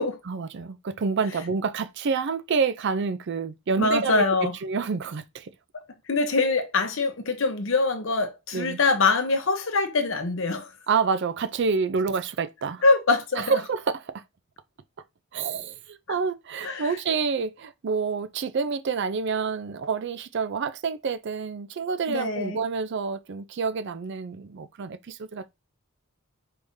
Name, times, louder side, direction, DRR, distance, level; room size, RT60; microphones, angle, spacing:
voice 1, 0.3-5.5 8.5-8.8 10.9-12.8 13.4-14.2 15.3-25.5, right 5 dB, 55° right, 0.4 m, -28 dB
voice 2, 3.8-4.5 6.1-10.7 12.8-13.6 16.6-16.9 22.1-22.6, left 3 dB, 65° left, 0.9 m, -24 dB
4.8 x 3.6 x 2.6 m
head